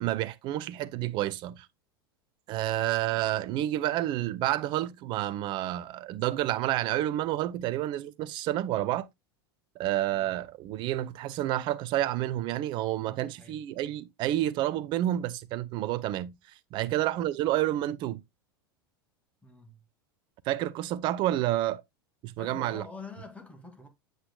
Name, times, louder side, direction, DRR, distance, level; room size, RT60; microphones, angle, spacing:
voice 1, 0.0-1.7 2.5-9.1 9.8-16.3 16.7-18.2 20.5-21.8 22.2-22.9, right 14 dB, 40° right, 0.6 m, -29 dB
voice 2, 13.0-13.6 16.7-16.9 19.4-19.8 22.3-23.9, left 3 dB, 10° left, 1.9 m, -46 dB
8.0 x 7.8 x 2.2 m
figure-of-eight pair, 85°, 12 cm